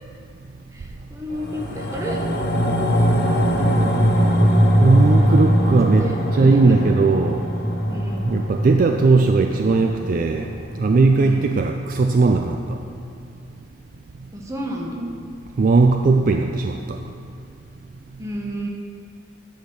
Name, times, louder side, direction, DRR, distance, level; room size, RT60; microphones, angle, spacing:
voice 1, 0.7-2.2 5.1-5.4 5.8-6.8 7.9-8.3 11.1-11.5 14.3-15.1 18.2-18.7, equal, 15° right, -1 dB, 0.9 m, -31 dB
sound 1, 1.3-11.9 12.3-12.4, equal, 55° left, 1.2 m, -21 dB
voice 2, 4.8-7.4 8.2-10.5 10.8-12.8 15.6-17.0, right 3 dB, 45° right, 4 dB, 0.3 m, -18 dB
9.9 x 4.4 x 6.4 m, 2.4 s
head